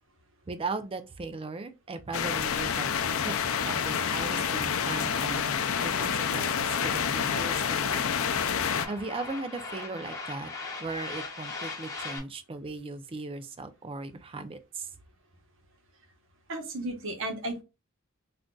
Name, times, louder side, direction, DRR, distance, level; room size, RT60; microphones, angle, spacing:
voice 1, 0.5-3.4 3.6-8.0 8.9-10.5 10.8-14.9, right 3 dB, 25° right, 0.4 m, -38 dB
sound 1, 2.1-8.9, left 7 dB, 65° left, 0.4 m, -28 dB
sound 2, 2.8-12.2, left 3 dB, 15° left, 1.1 m, -42 dB
voice 2, 16.5-17.6, right 1 dB, 60° right, 0.9 m, -34 dB
3.7 x 2.5 x 2.2 m
head